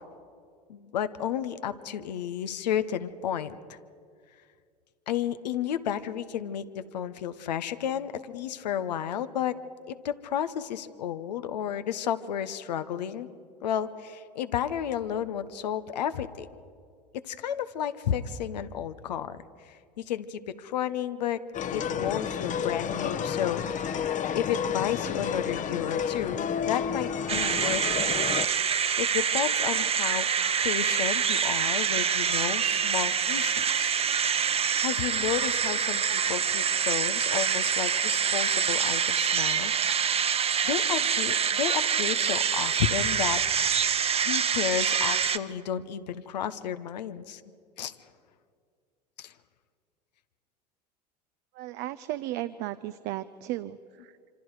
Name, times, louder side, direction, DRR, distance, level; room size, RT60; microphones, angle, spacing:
voice 1, 0.7-3.8 5.1-9.5 9.9-13.3 13.6-16.5 17.1-21.4 21.7-24.1 24.3-28.0 28.7-30.3 30.6-34.0 34.5-43.4 44.2-47.4 47.8-47.9 49.2-49.3, left 9 dB, 75° left, 11 dB, 1.0 m, -32 dB
sound 1, 21.5-28.5, left 8 dB, 35° left, 1.1 m, -31 dB
sound 2, 27.3-45.4, right 7 dB, 30° right, 1.0 m, -26 dB
voice 2, 51.5-54.1, right 15 dB, 55° right, 12 dB, 0.7 m, -35 dB
26.5 x 26.0 x 4.9 m, 2.2 s
hypercardioid pair, 75°, 21 cm